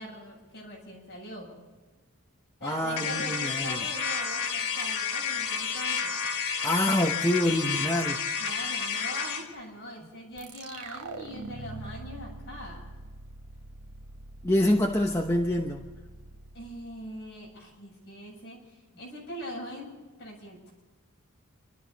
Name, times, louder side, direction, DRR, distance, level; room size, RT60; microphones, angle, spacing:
voice 1, 0.0-1.6 2.6-6.2 8.4-12.9 16.5-19.9 20.2-20.6, left 1 dB, 50° left, -2 dB, 7.4 m, -42 dB
voice 2, 2.6-3.8 6.6-8.2 14.4-15.9, left 1 dB, 10° left, 0 dB, 0.9 m, -26 dB
sound 1, 3.0-9.5, left 6 dB, 80° left, 3.2 m, -30 dB
sound 2, 10.4-17.6, right 3 dB, 90° right, 1.2 m, -44 dB
27.5 x 12.5 x 4.1 m, 1.3 s
head